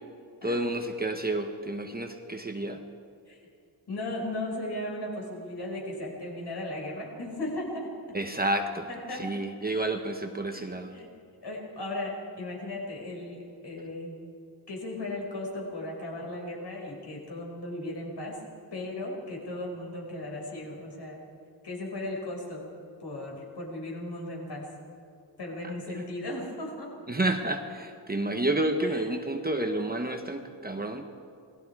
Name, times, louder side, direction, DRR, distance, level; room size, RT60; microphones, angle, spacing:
voice 1, 0.4-2.8 8.1-11.0 25.6-25.7 27.1-31.0, right 1 dB, 20° right, 5 dB, 1.1 m, -30 dB
voice 2, 3.9-8.2 8.9-9.2 9.6-9.9 10.5-11.1 11.4-14.2 14.7-18.4 18.7-21.2 21.6-22.7 23.0-24.7 25.4-26.9 28.8-29.1, left 1 dB, 60° left, -1 dB, 5.7 m, -36 dB
28.0 x 20.5 x 4.8 m, 2.5 s
wide cardioid pair, 175°, 45 cm